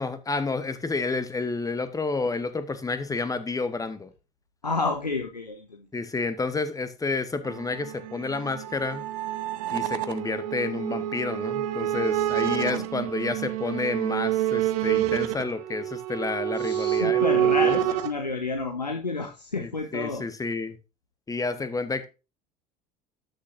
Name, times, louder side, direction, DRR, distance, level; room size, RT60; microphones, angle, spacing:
voice 1, 0.0-4.1 5.9-9.0 9.7-17.8 19.6-20.8 21.3-22.0, left 3 dB, 15° left, 1.2 m, -30 dB
voice 2, 4.6-5.9 12.6-12.9 16.5-20.2, left 3 dB, 90° left, 0.7 m, -30 dB
sound 1, 7.4-18.1, right 12 dB, 60° right, 0.8 m, -27 dB
13.0 x 6.5 x 2.6 m
figure-of-eight pair, 65°, 20 cm